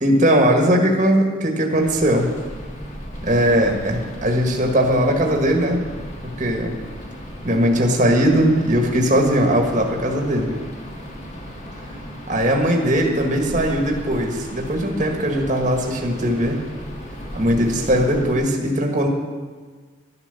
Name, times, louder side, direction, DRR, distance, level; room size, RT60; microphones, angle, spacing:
voice 1, 0.0-2.3 3.2-5.8 6.2-6.7 7.4-10.5 12.3-16.6 17.3-19.1, equal, 40° right, 1 dB, 1.6 m, -19 dB
sound 1, 1.8-18.3, equal, 35° left, 1.9 m, -35 dB
12.0 x 10.5 x 6.8 m, 1.5 s
head